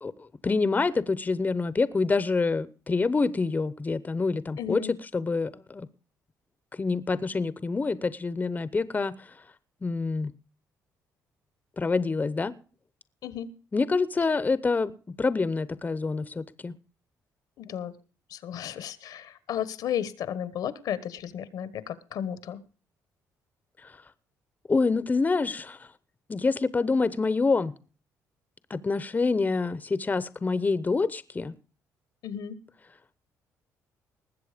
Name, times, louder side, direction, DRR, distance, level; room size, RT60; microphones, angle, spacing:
voice 1, 0.0-4.8 5.1-5.9 6.7-9.3 9.8-10.3 11.8-12.5 13.7-16.7 23.8-23.9 24.7-25.9 26.3-27.7 28.7-31.5, left 4 dB, 25° left, 0.8 m, -26 dB
voice 2, 4.6-4.9 13.2-13.5 17.6-17.9 18.3-22.6 32.2-32.6, left 9 dB, 75° left, 1.2 m, -34 dB
20.0 x 7.8 x 5.1 m
cardioid pair, 85°, 7 cm